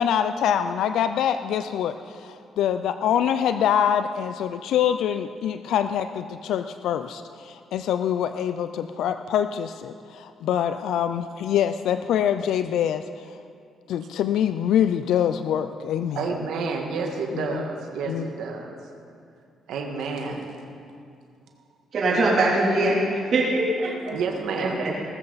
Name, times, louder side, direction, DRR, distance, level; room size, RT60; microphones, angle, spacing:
voice 1, 0.0-13.4 13.9-16.3 17.3-17.6 18.1-18.3, left 9 dB, 80° left, 10 dB, 0.4 m, -25 dB
voice 2, 16.1-18.8 19.7-20.6 23.8-24.8, right 4 dB, 80° right, 2 dB, 1.7 m, -30 dB
voice 3, 21.9-23.0 23.3-23.9 24.6-25.0, right 2 dB, 55° right, -6 dB, 3.1 m, -22 dB
19.0 x 14.0 x 4.1 m, 2.4 s
cardioid pair, 90°, 0 cm